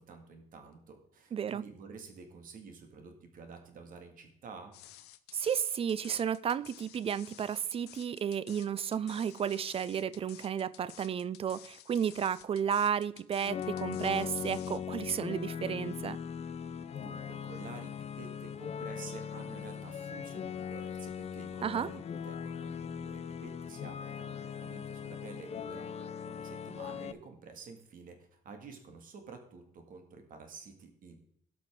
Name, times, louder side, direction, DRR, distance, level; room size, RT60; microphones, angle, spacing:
voice 1, 0.0-4.8 16.9-31.2, right 4 dB, 55° right, 2.1 m, -50 dB
voice 2, 1.3-1.6 5.3-16.2 21.6-21.9, right 8 dB, 35° right, 0.4 m, -33 dB
sound 1, 4.7-14.8, left 13 dB, 75° left, 0.7 m, -53 dB
sound 2, 13.4-27.1, left 7 dB, 40° left, 0.6 m, -40 dB
17.0 x 5.9 x 3.7 m
cardioid pair, 110°, 17 cm